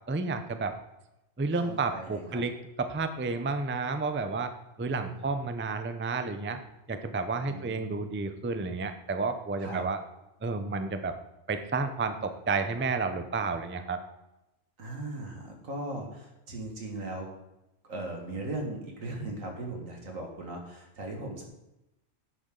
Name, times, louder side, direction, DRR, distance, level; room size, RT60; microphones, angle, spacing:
voice 1, 0.1-0.8 1.4-2.5 2.8-4.5 4.8-6.6 6.9-10.0 10.4-11.2 11.5-14.0, right 4 dB, 15° right, 8 dB, 0.4 m, -31 dB
voice 2, 1.5-2.4 4.9-5.3 7.5-8.1 9.6-9.8 14.8-17.3 17.8-21.4, right 2 dB, 90° right, 2 dB, 2.3 m, -38 dB
10.5 x 8.3 x 3.9 m, 0.92 s
omnidirectional pair, 1.3 m